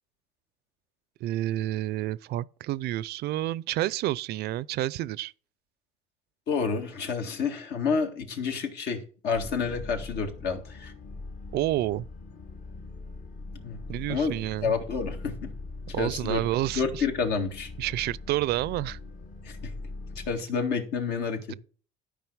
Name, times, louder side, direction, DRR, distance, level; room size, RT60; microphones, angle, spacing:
voice 1, 1.2-5.3 11.5-12.1 13.9-14.7 15.9-17.0 17.8-19.0 21.5-21.6, right 15 dB, 75° right, 0.4 m, -29 dB
voice 2, 6.5-10.9 13.6-13.8 14.1-14.4 14.6-15.5 16.0-16.4 16.7-17.7 19.6-19.7 20.3-21.4, left 5 dB, 80° left, 1.9 m, -29 dB
sound 1, 9.3-20.4, left 3 dB, 50° left, 1.2 m, -41 dB
12.5 x 5.2 x 4.7 m
cardioid pair, 110°, 17 cm